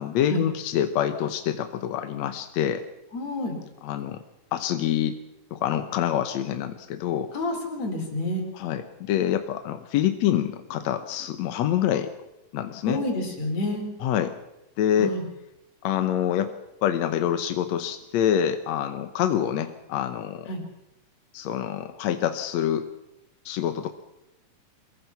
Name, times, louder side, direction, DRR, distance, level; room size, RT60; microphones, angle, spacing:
voice 1, 0.0-2.9 3.8-4.2 4.5-5.2 5.5-7.3 8.5-12.1 12.5-13.0 14.0-14.4 14.8-15.1 15.8-16.5 16.8-20.5 21.3-22.9 23.5-23.9, left 10 dB, 70° left, 9 dB, 1.8 m, -26 dB
voice 2, 3.1-3.6 7.3-8.4 12.9-13.9 15.0-15.2 20.5-20.6, left 1 dB, 50° left, 2 dB, 5.3 m, -28 dB
23.5 x 21.5 x 5.9 m, 0.90 s
omnidirectional pair, 4.0 m